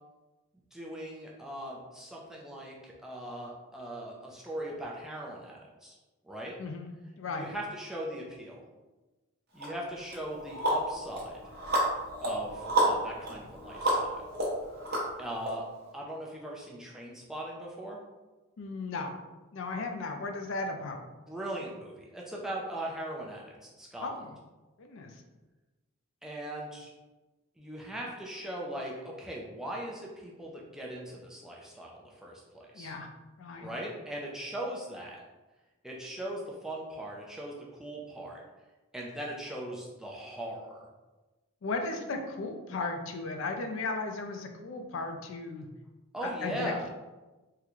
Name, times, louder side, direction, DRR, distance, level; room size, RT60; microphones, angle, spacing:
voice 1, 0.7-6.0 6.2-6.5 7.2-8.6 9.5-11.4 12.2-14.3 15.2-15.7 15.9-18.0 21.3-24.1 26.2-26.9 27.6-32.9 33.6-35.2 35.8-38.4 38.9-40.8 46.1-46.9, right 1 dB, ahead, -4 dB, 0.4 m, -39 dB
voice 2, 6.6-7.5 18.6-19.1 19.5-21.0 24.0-24.3 24.8-25.1 32.7-33.1 33.4-33.7 41.6-45.7 46.2-46.9, left 3 dB, 65° left, 4 dB, 0.4 m, -36 dB
sound 1, 9.6-9.7 10.1-15.5, right 1 dB, 50° right, 0.8 m, -31 dB
3.7 x 2.2 x 2.9 m, 1.1 s
head